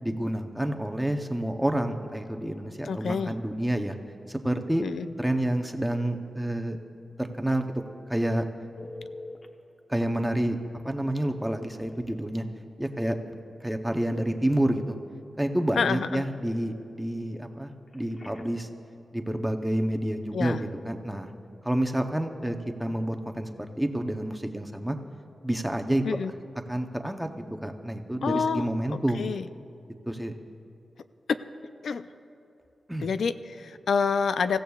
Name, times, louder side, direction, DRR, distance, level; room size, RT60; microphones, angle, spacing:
voice 1, 0.0-3.9 4.3-4.8 5.2-6.8 7.2-7.6 8.1-8.4 8.8-8.9 9.9-10.6 10.8-12.5 12.8-13.1 13.6-15.0 15.4-18.7 19.1-21.3 21.6-25.0 25.4-26.0 26.7-27.3 27.6-29.3 30.1-30.3 32.9-33.1, right 1 dB, 5° right, 5 dB, 0.7 m, -28 dB
voice 2, 2.8-3.3 4.8-5.1 15.8-16.2 20.3-20.6 26.0-26.3 28.2-29.5 31.8-32.1 33.0-34.6, left 5 dB, 85° left, 11 dB, 0.4 m, -28 dB
Telephone, 8.8-9.5 10.0-10.1 11.9-12.0 12.4-12.6 17.9-18.7 25.8-26.0, left 2 dB, 35° left, 0.9 m, -44 dB
27.0 x 15.5 x 2.4 m, 2.8 s
wide cardioid pair, 180°, 0 cm